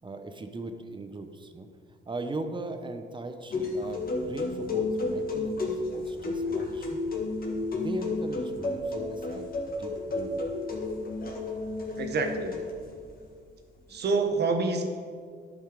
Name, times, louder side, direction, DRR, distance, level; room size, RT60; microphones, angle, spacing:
voice 1, 0.0-1.7 2.0-7.0 7.7-10.4, right 2 dB, 25° right, 7 dB, 0.9 m, -39 dB
sound 1, 3.5-13.0, left 3 dB, 45° left, 1.7 m, -32 dB
voice 2, 12.0-12.6 13.9-14.9, right 3 dB, 55° right, 5 dB, 1.2 m, -27 dB
11.0 x 5.5 x 5.0 m, 2.1 s
cardioid pair, 90°, 20 cm